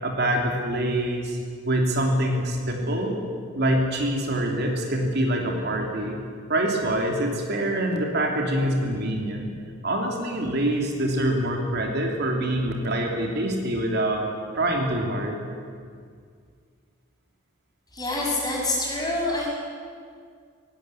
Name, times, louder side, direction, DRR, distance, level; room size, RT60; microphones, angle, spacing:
voice 1, 0.0-1.4 1.6-3.2 3.5-6.2 6.5-9.5 9.8-14.2 14.5-15.4, right 1 dB, 55° right, 1 dB, 3.0 m, -25 dB
voice 2, 17.9-19.5, left 2 dB, 20° left, -3 dB, 6.2 m, -26 dB
18.0 x 17.5 x 9.9 m, 2.1 s
head